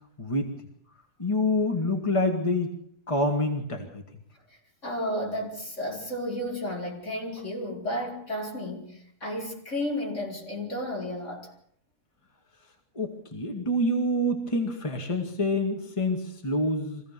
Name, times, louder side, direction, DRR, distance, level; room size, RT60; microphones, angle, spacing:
voice 1, 0.2-0.5 1.2-2.7 3.1-4.0 13.0-17.0, left 1 dB, 20° left, 2.1 m, -27 dB
voice 2, 4.5-11.5, left 1 dB, 55° left, 5.5 m, -33 dB
25.0 x 16.5 x 6.9 m
omnidirectional pair, 1.5 m